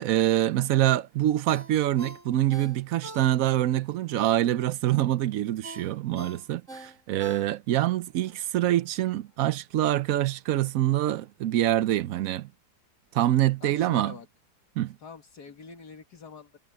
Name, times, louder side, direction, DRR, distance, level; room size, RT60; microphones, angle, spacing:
voice 1, 0.0-12.5 13.1-14.1 14.8-15.0, right 13 dB, 65° right, 0.9 m, -25 dB
Ringtone, 1.5-3.7 4.1-4.2 5.6-7.9 8.3-8.4, right 1 dB, 45° right, 6.5 m, -44 dB
voice 2, 13.6-14.3 15.0-16.6, left 5 dB, 70° left, 2.5 m, -45 dB
omnidirectional pair, 1.8 m